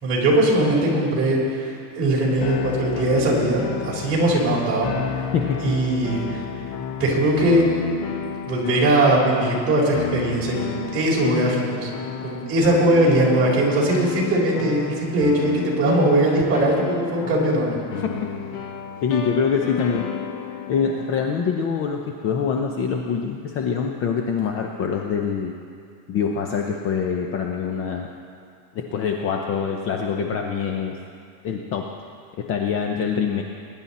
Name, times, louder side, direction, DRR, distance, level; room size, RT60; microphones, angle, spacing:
voice 1, 0.0-5.3 5.6-6.4 7.0-7.7 8.5-11.9 12.2-17.8, right 1 dB, 30° right, -4 dB, 3.9 m, -20 dB
sound 1, 2.4-21.7, left 7 dB, 55° left, 1.5 m, -32 dB
voice 2, 19.0-20.0 20.7-25.5 26.1-28.1 28.7-31.0 31.4-31.9 32.4-33.4, left 6 dB, 25° left, 2 dB, 0.6 m, -24 dB
21.0 x 10.5 x 4.2 m, 2.3 s
supercardioid pair, 160°, 48 cm